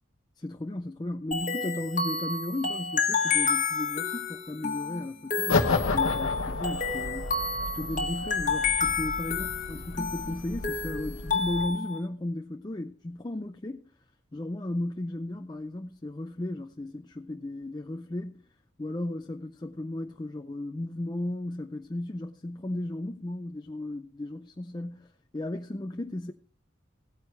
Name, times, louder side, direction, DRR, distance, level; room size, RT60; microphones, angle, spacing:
voice 1, 0.4-13.8 14.3-18.4 18.8-26.3, left 1 dB, 20° left, 0.5 m, -35 dB
sound 1, 1.3-12.0, left 5 dB, 40° left, 1.5 m, -30 dB
sound 2, 5.5-11.6, left 3 dB, 85° left, 1.0 m, -32 dB
17.0 x 9.3 x 3.3 m
head